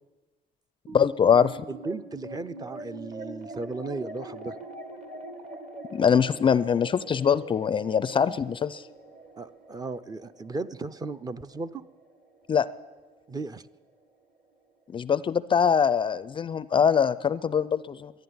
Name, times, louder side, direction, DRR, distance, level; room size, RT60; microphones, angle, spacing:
voice 1, 0.9-1.6 5.9-8.8 12.5-12.7 14.9-18.1, left 7 dB, 30° left, 15 dB, 0.4 m, -23 dB
sound 1, 0.9-13.5, right 2 dB, 50° right, 1.8 m, -43 dB
voice 2, 1.7-4.6 9.4-11.8 13.3-13.6, right 3 dB, 20° right, 12 dB, 0.5 m, -36 dB
12.0 x 11.0 x 9.4 m, 1.2 s
cardioid pair, 110°, 17 cm